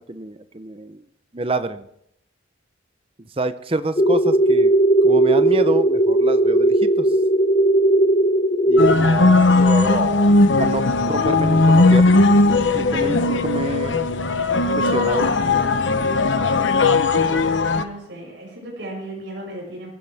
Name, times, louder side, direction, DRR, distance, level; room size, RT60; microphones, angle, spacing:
voice 1, 0.1-1.0 1.3-1.9 3.2-4.7 5.0-7.1 8.7-12.3 12.7-14.0 14.7-15.3, right 2 dB, 30° right, 12 dB, 0.7 m, -27 dB
sound 1, 4.0-8.9, right 1 dB, 30° left, 0.7 m, -17 dB
sound 2, 8.8-17.8, left 3 dB, 70° left, 1.0 m, -17 dB
voice 2, 17.1-19.9, right 1 dB, 70° right, -3 dB, 6.5 m, -36 dB
23.0 x 15.0 x 3.5 m, 0.76 s
head